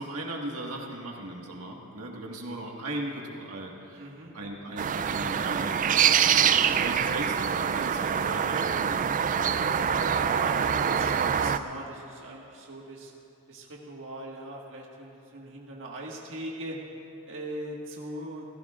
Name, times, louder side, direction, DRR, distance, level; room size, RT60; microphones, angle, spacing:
voice 1, 0.0-4.1 4.3-9.5, right 1 dB, 75° right, 0 dB, 1.7 m, -38 dB
voice 2, 3.9-4.3 9.4-13.1 13.5-16.8 17.2-18.5, right 1 dB, 60° right, -2 dB, 1.7 m, -40 dB
sound 1, 4.8-11.6, right 8 dB, 35° right, 0.4 m, -25 dB
29.0 x 15.5 x 2.5 m, 2.7 s
head